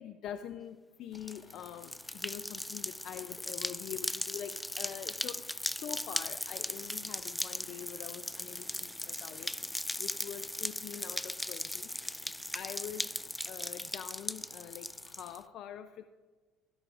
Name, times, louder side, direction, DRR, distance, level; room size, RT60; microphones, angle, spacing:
voice 1, 0.0-12.0 12.5-13.1 13.5-16.1, left 9 dB, 65° left, 11 dB, 0.5 m, -45 dB
sound 1, 1.1-15.3, left 3 dB, 45° left, 2.2 m, -61 dB
sound 2, 1.1-15.4, left 1 dB, 5° left, 0.3 m, -38 dB
16.0 x 13.5 x 2.5 m, 1.4 s
supercardioid pair, 75°, 0 cm